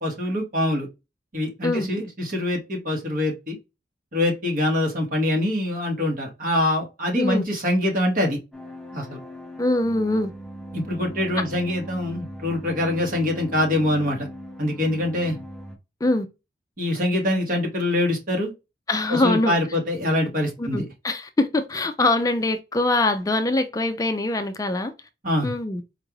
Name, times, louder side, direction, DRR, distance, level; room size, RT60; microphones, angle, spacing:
voice 1, 0.0-0.9 1.3-3.6 4.1-8.4 8.9-9.2 10.7-14.3 14.6-15.4 16.8-18.5 19.1-20.8 25.2-25.5, left 1 dB, 50° right, 1.6 m, -24 dB
sound 1, 8.5-15.8, equal, 5° left, 0.7 m, -39 dB
voice 2, 9.6-10.3 16.0-16.3 18.9-19.5 20.6-24.9 25.4-25.8, left 2 dB, 20° left, 0.4 m, -23 dB
4.5 x 2.4 x 3.1 m
head